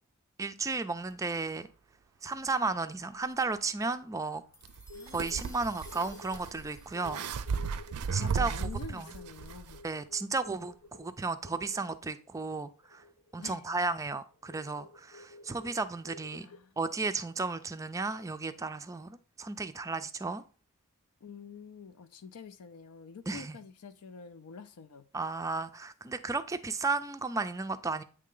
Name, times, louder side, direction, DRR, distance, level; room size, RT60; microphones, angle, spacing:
voice 1, 0.4-1.7 2.2-4.4 5.1-7.2 8.1-9.1 9.8-13.0 13.3-16.5 16.8-20.4 23.3-23.6 25.1-28.0, right 3 dB, 15° right, 0.3 m, -34 dB
sound 1, 4.5-9.1, left 2 dB, 15° left, 0.7 m, -56 dB
sound 2, 4.6-9.8, right 5 dB, 80° right, 0.4 m, -35 dB
voice 2, 4.9-5.3 8.1-9.8 13.4-13.7 16.3-16.8 21.2-25.1, left 5 dB, 75° left, 0.5 m, -47 dB
sound 3, 4.9-5.4 5.8-13.3 13.6-13.8 14.1-14.2 14.5-16.6, left 2 dB, 55° left, 0.8 m, -52 dB
8.5 x 3.3 x 3.7 m
head